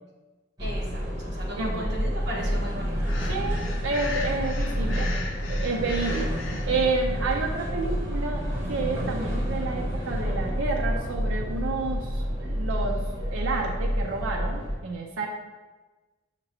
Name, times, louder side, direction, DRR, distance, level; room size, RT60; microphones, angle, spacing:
sound 1, 0.6-14.7, equal, 20° right, 1.0 m, -29 dB
voice 1, 0.6-3.1, equal, 55° right, -4 dB, 1.1 m, -36 dB
voice 2, 1.6-1.9 3.3-5.1 5.5-6.3 6.7-15.3, right 3 dB, 80° right, 1 dB, 0.4 m, -30 dB
Breathing, 3.0-6.7, left 3 dB, 70° left, 0.6 m, -37 dB
6.6 x 2.9 x 2.7 m, 1.2 s
head